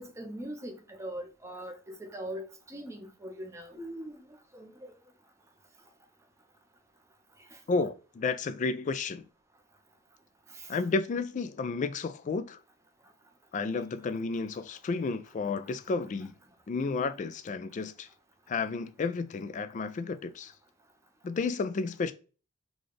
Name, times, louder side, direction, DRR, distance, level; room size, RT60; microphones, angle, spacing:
voice 1, 0.0-1.7 2.0-4.2 4.6-4.7 7.7-7.9, right 1 dB, 15° right, 0.7 m, -41 dB
voice 2, 7.7-9.3 10.7-12.6 13.5-16.3 16.7-18.1 18.5-20.5 21.2-22.1, left 4 dB, 35° left, 0.3 m, -32 dB
4.0 x 2.3 x 3.1 m
head